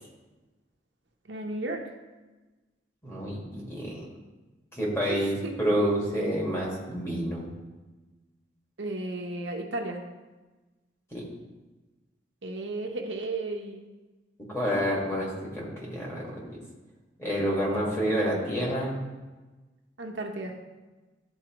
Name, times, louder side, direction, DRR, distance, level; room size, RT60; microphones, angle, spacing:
voice 1, 1.3-1.9 5.1-5.5 8.8-10.0 12.4-13.9 20.0-20.6, right 2 dB, 75° right, 2 dB, 0.8 m, -34 dB
voice 2, 3.0-4.1 4.7-7.5 11.1-11.2 14.5-16.6 17.2-19.0, equal, 15° left, -4 dB, 1.8 m, -29 dB
12.0 x 4.0 x 3.0 m, 1.2 s
head